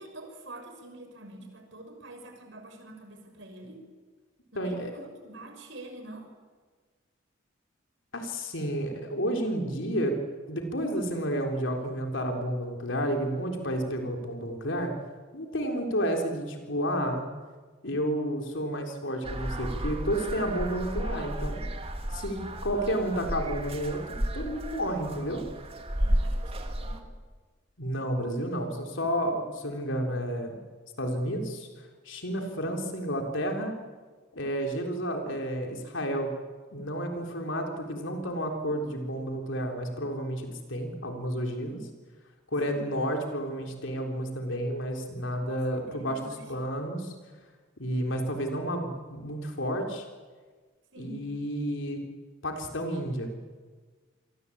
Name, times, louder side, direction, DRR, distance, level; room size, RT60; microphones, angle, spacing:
voice 1, 0.0-3.8 4.5-6.3 26.0-27.0 42.7-42.9 45.3-46.5 50.9-51.3, right 1 dB, 65° right, 5 dB, 6.1 m, -46 dB
voice 2, 4.6-4.9 8.1-10.2 10.5-14.9 15.3-17.2 17.8-21.7 22.1-25.4 27.8-30.6 31.0-33.8 34.3-36.3 36.7-41.8 42.5-47.1 47.8-50.1 51.0-52.0 52.4-53.3, equal, 70° left, 3 dB, 3.8 m, -31 dB
sound 1, 19.2-27.0, right 1 dB, 30° right, 2.4 m, -33 dB
28.5 x 23.0 x 8.7 m, 1.4 s
head